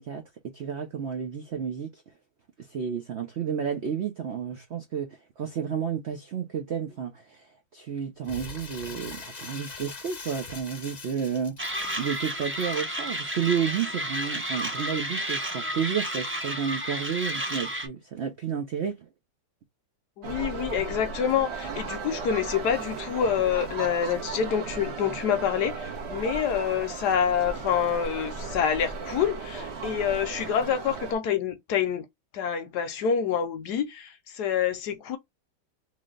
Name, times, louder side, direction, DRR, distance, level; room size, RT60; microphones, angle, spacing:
voice 1, 0.0-2.0 2.6-11.6 12.0-19.1, right 7 dB, 70° right, 0.6 m, -31 dB
Crumpling crinkling, 8.2-12.7, left 4 dB, 50° left, 0.4 m, -42 dB
Mechanisms, 11.6-17.9, right 1 dB, 15° right, 0.4 m, -31 dB
voice 2, 20.2-32.1 32.3-35.2, left 8 dB, 70° left, 1.1 m, -27 dB
sound 1, 20.2-31.1, right 4 dB, 45° right, 1.0 m, -36 dB
3.2 x 2.8 x 3.7 m
omnidirectional pair, 2.0 m